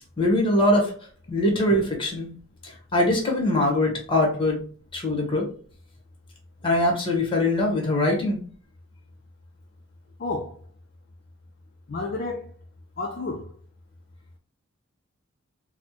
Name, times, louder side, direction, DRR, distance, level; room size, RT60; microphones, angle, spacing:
voice 1, 0.2-0.9 1.3-2.3 2.6-4.6 4.9-5.5 6.6-8.4, left 1 dB, 25° left, 1.0 m, -22 dB
voice 2, 10.2-10.6 11.9-12.5 13.0-13.5, left 3 dB, 45° left, 0.4 m, -31 dB
4.2 x 2.1 x 2.9 m
head